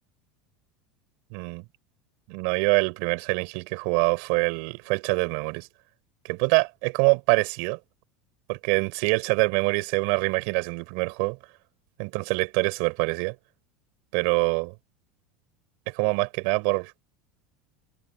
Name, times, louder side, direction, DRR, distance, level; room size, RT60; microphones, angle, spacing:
voice 1, 1.3-1.6 2.3-5.7 6.2-7.8 8.5-11.4 12.0-13.4 14.1-14.7 15.9-16.9, right 33 dB, 70° right, 4.0 m, -25 dB
supercardioid pair, 100°, 0 cm